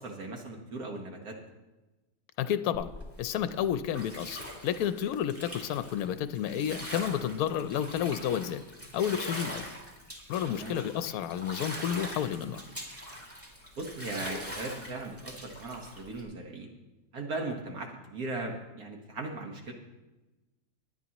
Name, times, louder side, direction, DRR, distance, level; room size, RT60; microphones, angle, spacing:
voice 1, 0.0-1.4 10.6-10.8 13.8-16.7 17.1-19.7, right 2 dB, 75° right, 1 dB, 1.9 m, -38 dB
voice 2, 2.4-2.9 3.2-8.7 8.9-9.7 10.3-12.7, left 9 dB, 75° left, 12 dB, 1.1 m, -31 dB
Bathtub (filling or washing), 2.7-16.2, equal, 10° right, 2.0 m, -43 dB
20.5 x 9.1 x 3.0 m, 1.1 s
omnidirectional pair, 1.6 m